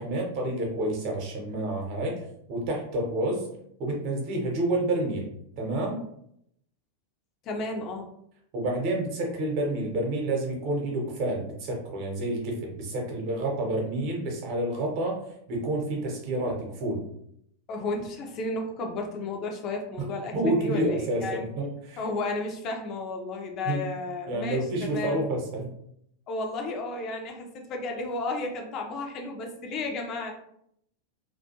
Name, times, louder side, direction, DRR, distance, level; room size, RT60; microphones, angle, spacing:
voice 1, 0.0-2.2 2.5-3.5 3.8-5.3 5.6-6.0 8.5-15.2 15.5-17.0 20.0-20.1 20.3-22.0 23.6-23.8 24.3-25.7, right 1 dB, 45° right, 0 dB, 0.8 m, -29 dB
voice 2, 7.4-8.1 17.7-21.5 22.0-25.2 26.3-30.3, left 2 dB, 35° left, 2 dB, 0.5 m, -33 dB
2.4 x 2.2 x 2.8 m, 0.72 s
figure-of-eight pair, 90°, 0 cm